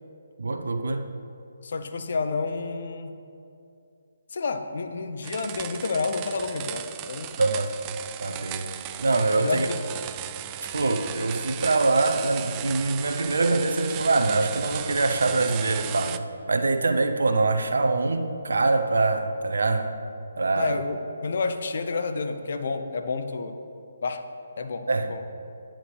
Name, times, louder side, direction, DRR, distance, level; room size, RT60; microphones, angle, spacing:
voice 1, 0.4-1.0 7.4-7.8 8.2-8.7 9.0-9.7 10.7-16.2 16.5-19.9 20.4-20.8 24.9-25.1, right 3 dB, 70° right, 7 dB, 0.8 m, -24 dB
voice 2, 1.6-3.1 4.3-7.3 9.3-9.8 20.5-23.6 24.0-24.2 24.6-25.2, left 4 dB, 55° left, 7 dB, 0.8 m, -30 dB
sound 1, 5.2-16.2, right 12 dB, 25° right, 0.3 m, -36 dB
11.0 x 8.8 x 3.4 m, 2.5 s
figure-of-eight pair, 145°, 0 cm